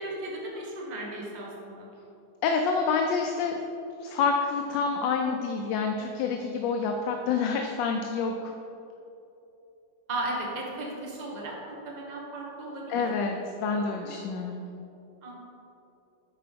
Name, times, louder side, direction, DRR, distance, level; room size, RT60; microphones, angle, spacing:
voice 1, 0.0-1.9 10.1-13.0 14.0-14.1 15.2-15.3, right 1 dB, 25° right, -3 dB, 1.2 m, -36 dB
voice 2, 2.4-3.6 4.0-8.5 12.9-14.6, left 5 dB, 75° left, 3 dB, 1.2 m, -28 dB
9.0 x 5.0 x 5.1 m, 2.8 s
omnidirectional pair, 2.1 m